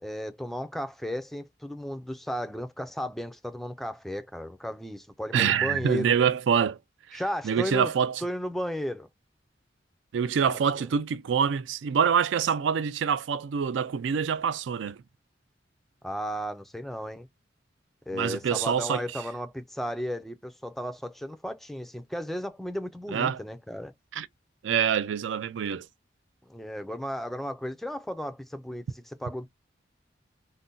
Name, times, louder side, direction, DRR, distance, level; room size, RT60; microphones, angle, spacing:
voice 1, 0.0-6.2 7.1-7.9 8.2-9.1 10.5-10.9 16.0-17.3 18.1-23.9 26.4-29.5, equal, ahead, 0.3 m, -34 dB
voice 2, 5.3-6.8 7.1-8.2 10.1-15.0 18.1-19.0 23.1-23.4 24.2-24.3 24.6-25.9, right 7 dB, 80° right, 0.4 m, -26 dB
2.5 x 2.0 x 3.7 m
head